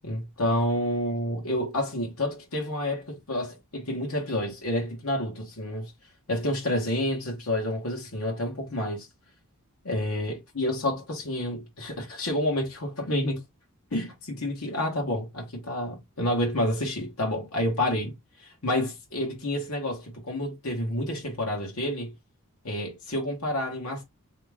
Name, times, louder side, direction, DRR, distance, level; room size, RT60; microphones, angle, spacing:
voice 1, 0.0-5.9 6.3-9.1 9.8-13.4 13.9-18.1 18.4-22.1 22.6-24.0, left 1 dB, 80° left, 1.2 m, -29 dB
3.5 x 2.9 x 3.4 m
head